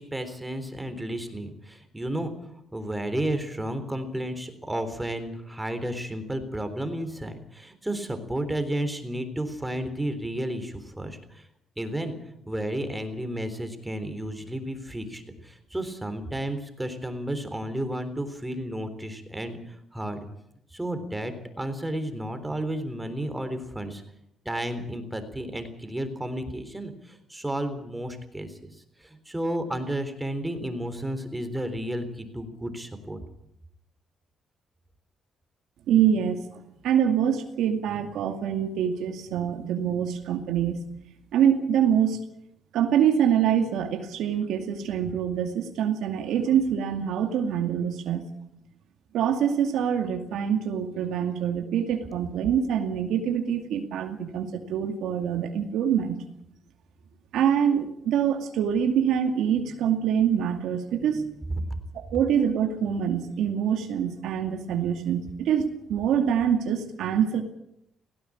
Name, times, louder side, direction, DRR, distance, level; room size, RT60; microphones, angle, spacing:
voice 1, 0.0-2.3 2.7-11.4 11.8-12.2 12.5-20.3 20.7-24.0 24.5-28.6 29.0-33.2, right 1 dB, 10° right, 9 dB, 3.7 m, -32 dB
voice 2, 35.9-36.4 36.8-40.8 41.3-42.2 42.7-48.2 49.1-56.2 57.3-61.3 61.9-67.4, right 8 dB, 85° right, 5 dB, 2.3 m, -25 dB
17.5 x 17.0 x 8.6 m, 0.76 s
cardioid pair, 90°, 0 cm